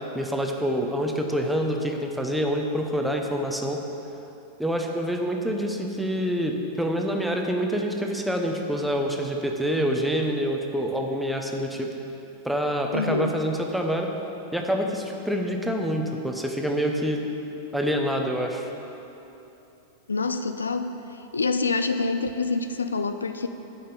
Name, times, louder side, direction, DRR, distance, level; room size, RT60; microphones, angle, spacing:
voice 1, 0.1-3.8 4.6-11.9 12.4-14.1 14.5-17.2 17.7-18.7, equal, 5° right, 2 dB, 0.9 m, -26 dB
voice 2, 12.9-13.4 20.1-23.5, left 4 dB, 75° left, 9 dB, 0.3 m, -27 dB
8.5 x 5.8 x 7.0 m, 3.0 s
figure-of-eight pair, 90°, 0 cm